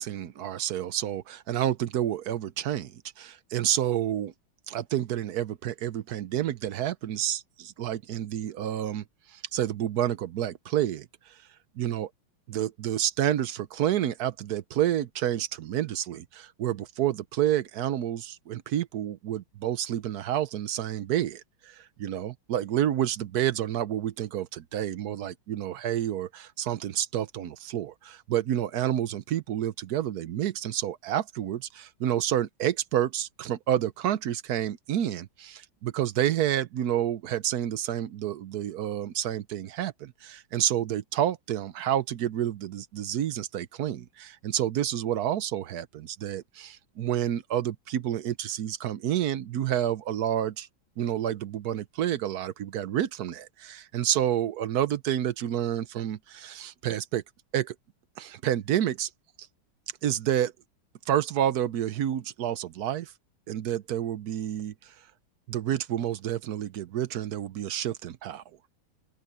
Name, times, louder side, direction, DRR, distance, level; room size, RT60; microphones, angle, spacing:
voice 1, 0.0-4.3 4.7-9.0 9.3-11.1 11.8-12.1 12.5-50.7 51.0-57.2 57.5-57.7 58.2-59.1 60.0-60.5 61.1-63.1 63.5-64.7 65.5-68.4, right 11 dB, 65° right, 1.1 m, -29 dB
open air
omnidirectional pair, 2.1 m